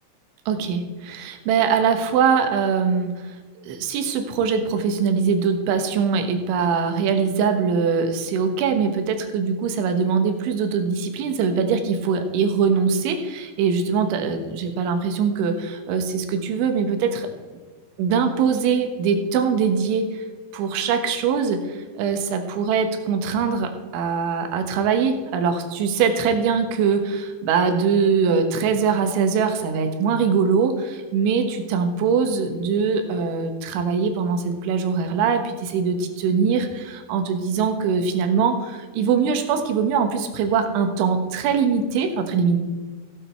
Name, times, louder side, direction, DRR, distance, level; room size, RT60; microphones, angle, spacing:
voice 1, 0.5-17.3 18.0-20.3 20.5-42.6, right 6 dB, 85° right, 6 dB, 3.6 m, -22 dB
15.5 x 8.9 x 4.4 m, 1.4 s
omnidirectional pair, 5.3 m